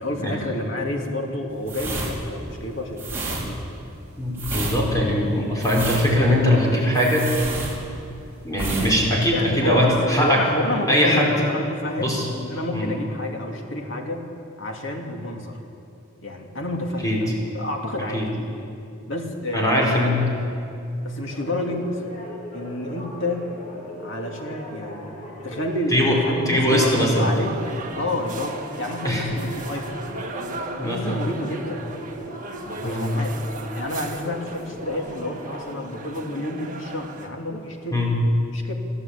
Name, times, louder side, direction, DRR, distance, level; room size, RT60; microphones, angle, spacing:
voice 1, 0.0-3.6 9.1-12.1 12.4-14.2 14.6-15.6 16.2-18.2 19.1-19.9 21.0-22.0 22.5-23.5 24.0-25.1 25.4-30.0 30.3-31.8 32.6-33.4 33.7-38.0 38.5-38.7, left 1 dB, 65° left, 2 dB, 2.6 m, -29 dB
sound 1, 1.6-8.2 8.5-8.9 9.2-9.4, right 2 dB, 10° right, 4.4 m, -30 dB
voice 2, 4.2-7.3 8.4-10.4 10.9-11.3 12.0-12.3 12.7-12.9 17.0-17.2 18.1-18.3 19.5-20.3 25.9-26.2 26.4-27.3 29.0-29.3 30.8-31.3 32.8-33.1 37.9-38.1, left 1 dB, 15° left, -2 dB, 5.0 m, -21 dB
sound 2, 21.3-35.7, equal, 35° left, 5.2 m, -38 dB
sound 3, 27.3-37.3, right 3 dB, 40° right, 1.8 m, -38 dB
23.5 x 14.5 x 8.6 m, 2.7 s
head